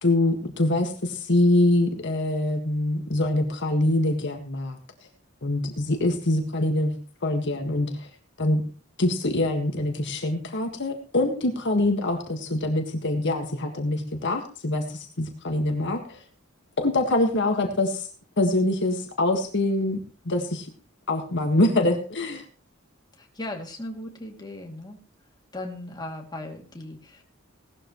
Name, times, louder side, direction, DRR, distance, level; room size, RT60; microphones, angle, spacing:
voice 1, 0.0-4.8 5.4-6.9 7.2-8.1 8.4-8.6 9.0-16.2 16.8-18.1 18.4-20.0 20.3-20.7 21.1-22.4, left 1 dB, 60° left, 4 dB, 1.7 m, -24 dB
voice 2, 23.1-25.0 25.5-27.2, left 1 dB, 20° left, 1 dB, 2.6 m, -37 dB
18.0 x 12.5 x 3.1 m, 0.38 s
head